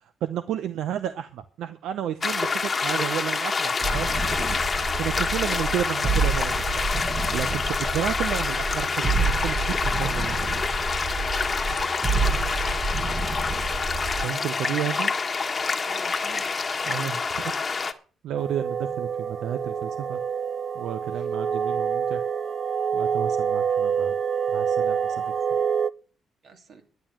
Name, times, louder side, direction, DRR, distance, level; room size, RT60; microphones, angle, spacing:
voice 1, 0.0-10.6 14.2-15.1 16.9-17.9 18.2-20.2 20.7-22.2 22.9-24.1 24.5-25.3, right 10 dB, 80° right, 11 dB, 0.8 m, -32 dB
sound 1, 2.2-17.9, left 4 dB, 30° left, 1.3 m, -27 dB
sound 2, 3.8-14.3, right 3 dB, 20° right, 1.4 m, -29 dB
voice 2, 14.8-15.2 15.8-16.5 21.1-21.3 25.2-25.7 26.4-26.8, right 4 dB, 55° right, 5 dB, 3.0 m, -47 dB
sound 3, 18.4-25.9, right 7 dB, 40° right, 0.5 m, -26 dB
11.0 x 9.4 x 7.4 m, 0.41 s
cardioid pair, 90°, 0 cm